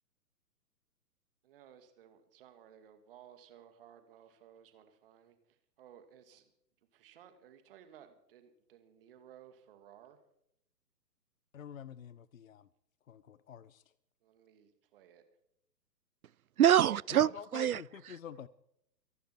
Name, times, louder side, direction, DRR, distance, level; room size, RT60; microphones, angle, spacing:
voice 1, 1.4-6.5 6.9-10.2 14.2-15.2, right 9 dB, 35° right, 2.1 m, -58 dB
voice 2, 11.5-12.7 13.1-13.8 17.1-18.5, left 8 dB, 55° left, 0.7 m, -47 dB
voice 3, 16.6-17.8, right 10 dB, 60° right, 0.5 m, -25 dB
24.5 x 11.5 x 4.5 m
figure-of-eight pair, 125°, 50 cm